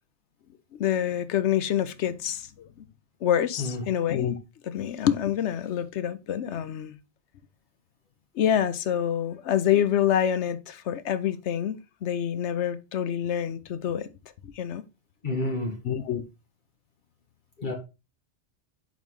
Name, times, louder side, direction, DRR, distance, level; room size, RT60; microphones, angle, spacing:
voice 1, 0.7-2.7 3.2-4.4 4.6-6.9 8.3-14.1 14.5-14.8 15.8-16.2, left 10 dB, 85° left, 1.0 m, -26 dB
voice 2, 15.2-15.8 17.6-17.7, left 2 dB, 45° left, 1.3 m, -29 dB
5.4 x 4.1 x 4.6 m
omnidirectional pair, 1.1 m